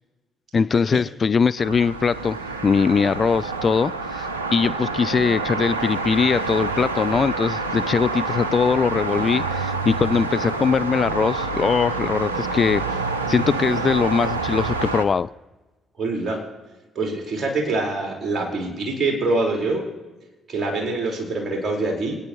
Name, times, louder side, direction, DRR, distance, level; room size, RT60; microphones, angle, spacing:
voice 1, 0.5-2.4 2.6-12.8 13.3-15.3, left 5 dB, 40° left, 15 dB, 0.4 m, -21 dB
sound 1, 1.6-15.0, right 3 dB, 90° right, 0.7 m, -27 dB
voice 2, 16.0-16.4 16.9-19.8 20.5-22.2, right 2 dB, 45° right, -1 dB, 4.5 m, -24 dB
28.0 x 9.7 x 3.1 m, 1.2 s
hypercardioid pair, 45°, 0 cm